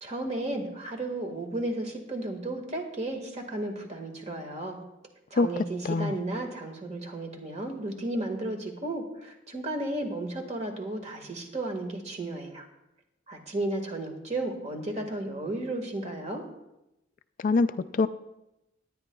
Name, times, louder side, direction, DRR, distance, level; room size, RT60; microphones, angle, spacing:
voice 1, 0.0-4.8 5.3-12.7 13.3-16.4, right 1 dB, 35° right, 3 dB, 1.8 m, -33 dB
voice 2, 17.4-18.1, left 3 dB, 45° left, 12 dB, 0.3 m, -24 dB
19.0 x 9.9 x 2.3 m, 0.92 s
head